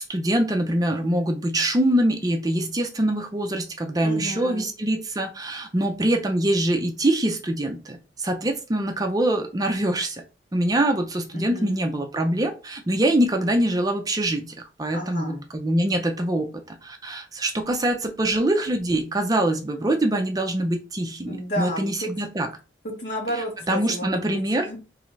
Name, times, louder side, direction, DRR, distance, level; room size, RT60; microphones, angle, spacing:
voice 1, 0.0-10.2 10.5-16.5 16.8-22.5 23.7-24.7, right 1 dB, 20° right, 4 dB, 0.4 m, -24 dB
voice 2, 4.0-4.7 11.3-11.8 14.9-15.4 21.3-22.1 22.8-24.8, equal, 60° left, -1 dB, 1.5 m, -32 dB
3.7 x 3.1 x 3.1 m, 0.32 s
head